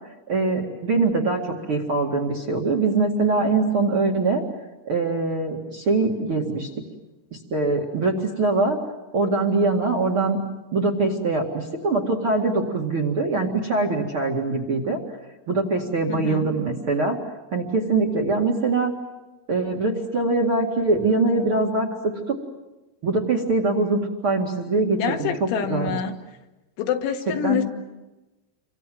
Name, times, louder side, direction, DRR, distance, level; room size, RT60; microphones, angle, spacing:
voice 1, 0.3-4.4 4.8-6.7 7.5-8.8 9.1-10.4 10.7-15.0 15.5-17.2 17.5-18.9 19.5-22.4 23.0-26.0 27.4-27.6, right 3 dB, 45° right, 2 dB, 1.7 m, -23 dB
voice 2, 16.1-16.5 24.9-26.1 26.8-27.7, left 8 dB, 70° left, 5 dB, 3.8 m, -26 dB
29.5 x 25.0 x 7.7 m, 1.1 s
omnidirectional pair, 5.9 m